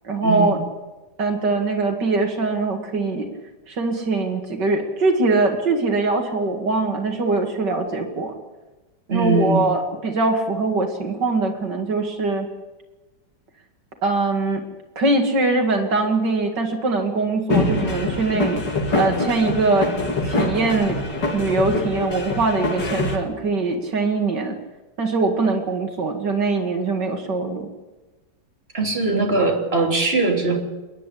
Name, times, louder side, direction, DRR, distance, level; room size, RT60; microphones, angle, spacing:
voice 1, 0.0-0.6 1.2-3.3 3.7-8.3 9.1-12.5 14.0-14.6 15.0-18.6 18.9-19.9 20.2-21.0 21.3-24.6 25.0-27.7, right 3 dB, 85° right, 3 dB, 2.8 m, -22 dB
voice 2, 9.1-9.6 28.7-30.6, right 3 dB, 35° right, 0 dB, 3.7 m, -20 dB
sound 1, 17.5-23.2, left 2 dB, 80° left, 3.3 m, -24 dB
29.5 x 10.5 x 10.0 m, 1.1 s
omnidirectional pair, 1.8 m